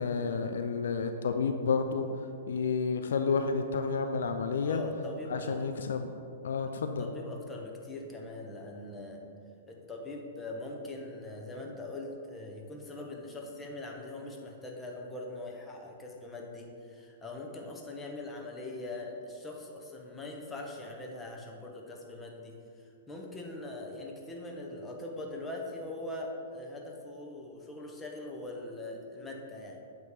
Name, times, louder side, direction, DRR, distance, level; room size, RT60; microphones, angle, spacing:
voice 1, 0.0-4.8 5.3-6.1 6.4-7.1, left 5 dB, 70° left, 7 dB, 0.4 m, -30 dB
voice 2, 4.6-5.7 7.0-9.2 9.7-29.8, left 2 dB, 15° left, 0 dB, 1.0 m, -42 dB
8.0 x 3.2 x 5.0 m, 2.5 s
hypercardioid pair, 115°, 0 cm